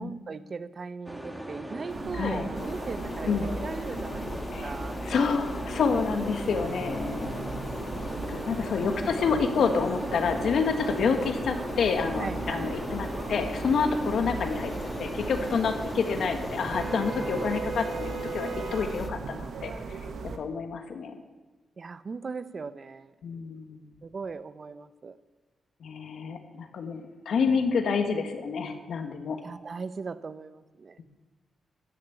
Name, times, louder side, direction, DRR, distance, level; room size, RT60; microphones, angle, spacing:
voice 1, 0.0-5.0 8.1-8.7 9.2-9.5 12.2-12.8 21.8-23.1 24.0-25.2 29.4-31.0, right 4 dB, 50° right, 14 dB, 0.7 m, -39 dB
sound 1, 1.1-17.6, right 1 dB, 10° right, 1.6 m, -39 dB
sound 2, 1.9-20.4, right 4 dB, 70° right, 1.4 m, -37 dB
voice 2, 2.1-2.5 3.3-3.5 4.5-4.7 5.0-7.4 8.3-14.7 15.0-19.7 20.4-21.2 23.2-23.9 25.8-29.4, left 5 dB, 75° left, 6 dB, 1.5 m, -28 dB
sound 3, 2.5-19.1, left 4 dB, 45° left, 0.9 m, -41 dB
13.5 x 6.9 x 8.4 m, 1.2 s
supercardioid pair, 55°, 0 cm